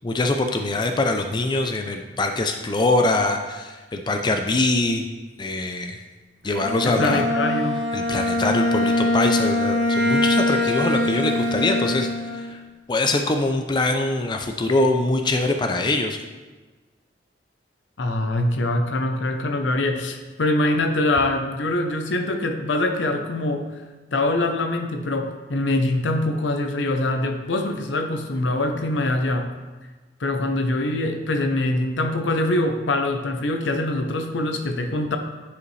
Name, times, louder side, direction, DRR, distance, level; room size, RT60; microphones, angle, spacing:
voice 1, 0.0-5.1 5.4-6.0 6.4-7.3 7.9-12.1 12.3-12.6 12.9-16.2, left 2 dB, 25° left, 5 dB, 0.4 m, -23 dB
Bowed string instrument, 6.5-12.5, left 1 dB, 65° right, 1.0 m, -23 dB
voice 2, 6.8-7.8 18.0-23.7 24.1-29.5 30.2-35.2, left 2 dB, 80° left, 6 dB, 0.7 m, -24 dB
9.4 x 5.0 x 3.2 m, 1.3 s
head